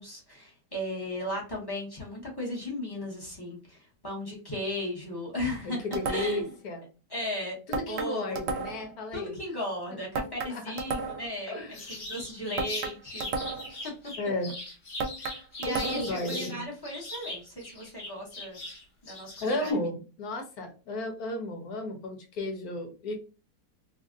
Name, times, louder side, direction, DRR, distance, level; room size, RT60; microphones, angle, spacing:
voice 1, 0.0-6.4 7.1-7.6 7.9-8.6 9.1-11.5 12.1-13.3 15.2-15.3 15.6-18.6 19.0-19.3 19.6-19.8, left 1 dB, 15° left, -4 dB, 1.0 m, -36 dB
voice 2, 5.6-6.8 7.7-9.4 9.9-10.0 10.5-10.6 11.5-11.8 14.2-14.6 15.2-16.6 19.4-23.2, left 1 dB, 65° left, 3 dB, 1.3 m, -34 dB
sound 1, 5.9-6.5 7.7-8.9 10.1-11.4 12.6-13.8 15.0-16.2, right 4 dB, 90° right, 1.2 m, -33 dB
sound 2, 11.7-16.5 16.8-19.7, left 2 dB, 40° left, 1.1 m, -40 dB
3.4 x 2.5 x 2.4 m, 0.34 s
omnidirectional pair, 1.8 m